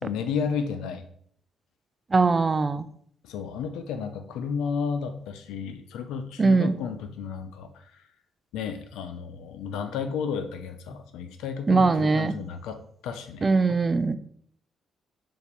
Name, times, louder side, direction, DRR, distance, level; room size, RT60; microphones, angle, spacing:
voice 1, 0.0-1.1 3.2-7.9 8.5-13.5, left 6 dB, 90° left, 8 dB, 0.8 m, -32 dB
voice 2, 2.1-2.9 6.4-6.7 11.7-12.3 13.4-14.2, right 4 dB, 30° right, 13 dB, 0.5 m, -21 dB
5.1 x 4.9 x 5.3 m, 0.62 s
cardioid pair, 90°, 0 cm